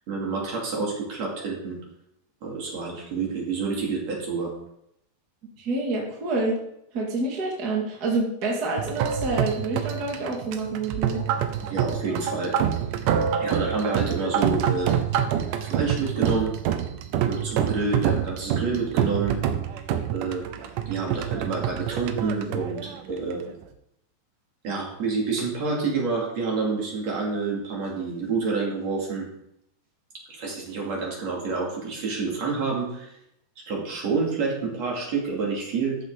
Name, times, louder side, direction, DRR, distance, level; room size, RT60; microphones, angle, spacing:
voice 1, 0.1-1.8 2.4-4.5 11.6-12.5 13.4-15.0 15.6-16.5 17.2-19.4 20.1-23.4 24.6-29.3 30.3-33.1 33.6-36.0, right 4 dB, 50° right, -2 dB, 3.4 m, -28 dB
voice 2, 5.6-6.6 6.9-11.2, right 2 dB, 35° right, -2 dB, 1.8 m, -27 dB
sound 1, 8.8-23.6, right 9 dB, 80° right, 2.2 m, -27 dB
13.0 x 7.3 x 3.9 m, 0.78 s
omnidirectional pair, 4.0 m